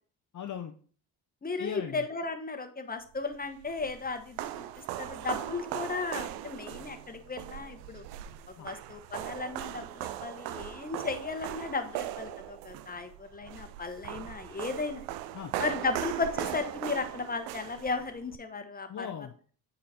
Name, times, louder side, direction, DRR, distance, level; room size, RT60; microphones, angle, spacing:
voice 1, 0.3-0.7 1.6-2.0 8.6-8.7 15.3-15.5 18.9-19.5, left 8 dB, 45° left, 5 dB, 0.9 m, -38 dB
voice 2, 1.4-4.6 5.0-8.0 8.6-15.0 15.6-19.1, left 4 dB, 20° left, 7 dB, 1.3 m, -35 dB
sound 1, 3.3-18.4, right 13 dB, 85° right, 0.6 m, -39 dB
8.4 x 4.1 x 4.4 m, 0.43 s
supercardioid pair, 70°, 44 cm